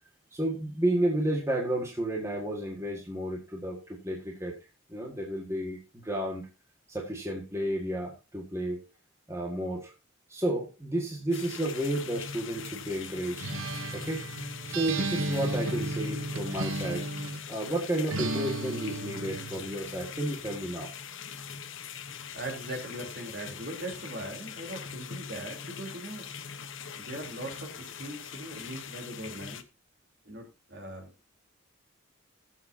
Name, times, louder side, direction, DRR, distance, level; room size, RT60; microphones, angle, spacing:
voice 1, 0.3-4.5 4.9-6.4 6.9-8.8 9.3-9.9 10.3-13.5 13.9-14.2 14.7-17.1 17.5-20.9, right 1 dB, 15° right, 0 dB, 1.7 m, -32 dB
sound 1, 11.3-29.6, left 6 dB, 65° left, 1.1 m, -42 dB
Acoustic guitar, 13.4-17.5 18.1-19.7, right 2 dB, 70° right, 0.9 m, -34 dB
voice 2, 22.3-26.3 27.0-29.6 30.3-31.1, right 1 dB, 50° right, 3 dB, 3.5 m, -40 dB
20.5 x 7.5 x 2.8 m, 0.27 s
head